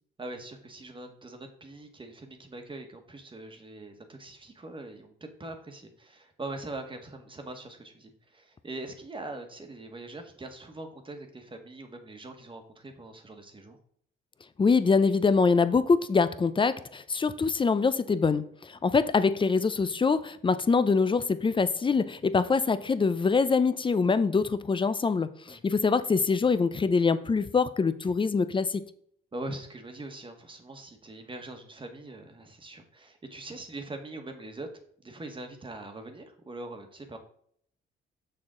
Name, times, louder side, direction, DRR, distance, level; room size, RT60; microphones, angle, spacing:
voice 1, 0.2-13.8 18.8-18.9 25.5-25.6 29.3-34.7 35.0-37.2, right 2 dB, 25° right, 1.3 m, -42 dB
voice 2, 14.6-28.9, left 4 dB, 25° left, 0.5 m, -24 dB
6.4 x 6.2 x 3.8 m
cardioid pair, 90°, 20 cm